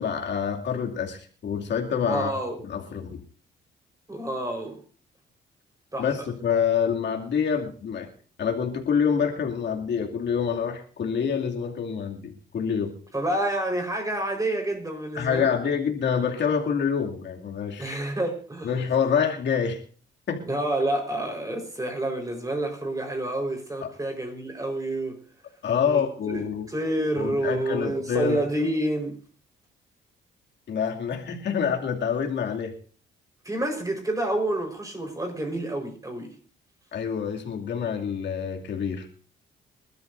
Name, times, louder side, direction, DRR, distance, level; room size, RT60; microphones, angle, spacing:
voice 1, 0.0-2.3 2.6-3.2 6.0-8.1 8.4-13.0 15.1-18.0 18.6-19.8 20.3-20.5 23.8-23.9 25.6-26.7 27.2-28.4 30.7-32.7 36.9-39.1, left 7 dB, 65° left, 1 dB, 2.6 m, -27 dB
voice 2, 2.0-2.5 4.1-4.8 5.9-6.2 13.1-15.5 17.8-18.7 20.5-25.2 25.8-29.2 33.4-36.4, right 1 dB, 15° right, 2 dB, 4.6 m, -28 dB
25.5 x 12.5 x 2.7 m, 0.41 s
cardioid pair, 90°, 20 cm